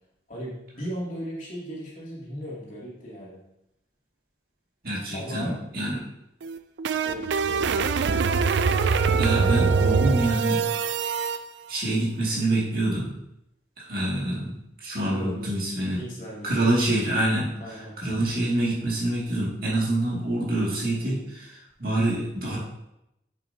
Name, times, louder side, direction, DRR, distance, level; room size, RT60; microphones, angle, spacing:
voice 1, 0.3-3.4 5.1-5.6 7.0-7.9 15.1-15.5 16.0-16.7 17.6-17.9, equal, 45° left, -6 dB, 2.7 m, -37 dB
voice 2, 4.8-6.0 8.4-8.8 9.2-10.6 11.7-13.1 13.8-14.5 14.8-16.0 16.4-17.5 18.0-22.6, right 1 dB, 50° right, -5 dB, 2.3 m, -26 dB
sound 1, 6.4-11.4, right 5 dB, 75° right, 0.4 m, -23 dB
7.8 x 7.2 x 2.8 m, 0.83 s
head